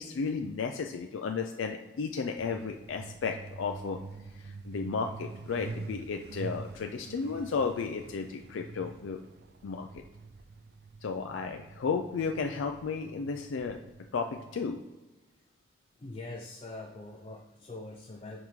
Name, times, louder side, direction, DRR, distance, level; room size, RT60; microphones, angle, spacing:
voice 1, 0.0-4.0 4.3-9.2 9.6-10.0 11.0-13.8 14.1-14.8, left 5 dB, 90° left, 4 dB, 0.4 m, -33 dB
Truck, 2.4-14.7, right 4 dB, 55° right, 0.3 m, -46 dB
voice 2, 16.0-18.4, left 2 dB, 30° left, 2 dB, 0.4 m, -43 dB
10.5 x 3.6 x 3.1 m, 1.2 s
head